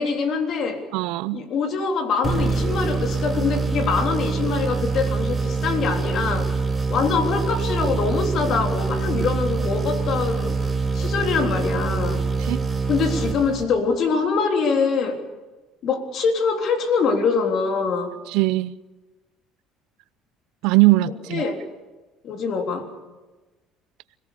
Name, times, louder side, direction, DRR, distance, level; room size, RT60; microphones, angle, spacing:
voice 1, 0.0-0.9 1.3-6.5 6.9-10.6 10.9-12.3 12.9-15.2 15.8-18.1 21.3-21.6 22.2-22.9, left 5 dB, 55° left, 3.5 m, -24 dB
voice 2, 0.9-1.4 9.1-9.3 12.4-12.7 18.3-18.7 20.6-21.4, right 20 dB, 75° right, 0.7 m, -20 dB
sound 1, 2.2-14.0, right 4 dB, 20° right, 5.8 m, -25 dB
26.0 x 17.5 x 6.9 m
supercardioid pair, 80°, 0 cm